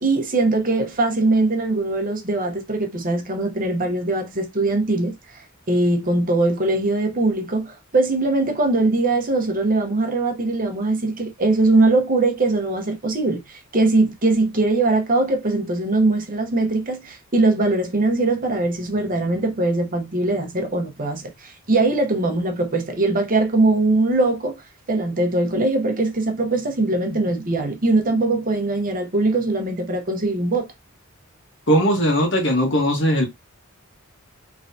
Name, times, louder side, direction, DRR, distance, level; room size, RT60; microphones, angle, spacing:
voice 1, 0.0-30.7, right 2 dB, 40° right, 1.0 m, -21 dB
voice 2, 31.7-33.3, equal, 60° left, 1.4 m, -19 dB
3.8 x 3.2 x 2.7 m
head